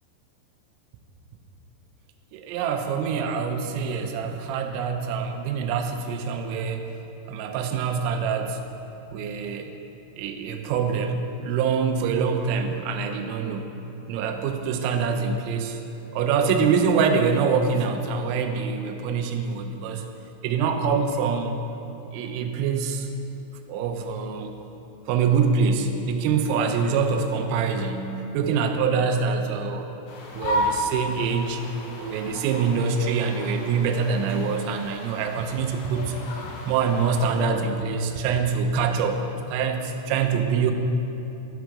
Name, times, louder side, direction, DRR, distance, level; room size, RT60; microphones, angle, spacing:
voice 1, 2.3-6.9 7.3-8.6 9.1-9.7 10.2-13.7 14.1-15.8 16.1-20.0 20.4-21.6 22.1-23.1 23.7-24.5 25.1-29.9 30.3-31.6 32.0-36.2 36.7-39.2 39.5-40.7, right 5 dB, 85° right, 5 dB, 3.2 m, -25 dB
sound 1, 30.1-37.5, left 1 dB, 85° left, 3.7 m, -33 dB
11.5 x 6.0 x 4.7 m, 2.9 s
omnidirectional pair, 5.9 m